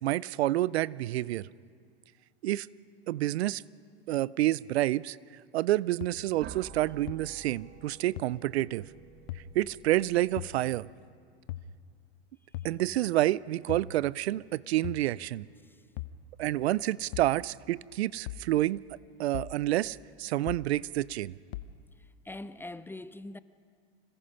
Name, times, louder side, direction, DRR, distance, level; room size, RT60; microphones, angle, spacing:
voice 1, 0.0-1.5 2.4-2.7 3.1-3.6 4.1-5.2 5.5-8.8 9.5-10.9 12.6-15.5 16.4-18.8 19.2-21.3, right 15 dB, 85° right, 0.5 m, -28 dB
sound 1, 6.0-6.1 7.1-7.2 8.2-8.3 9.3-9.4 10.4-10.5 11.5-11.7 12.5-12.8 13.7-13.9 14.8-15.1 16.0-16.2 17.1-17.3 18.3-18.5 19.3-19.6 20.5-20.7 21.5-21.7, left 14 dB, 60° left, 0.9 m, -38 dB
sound 2, 6.4-11.1, right 7 dB, 30° right, 1.1 m, -50 dB
voice 2, 22.0-23.4, left 2 dB, 5° left, 0.4 m, -43 dB
25.5 x 18.5 x 5.6 m
hypercardioid pair, 105°, 31 cm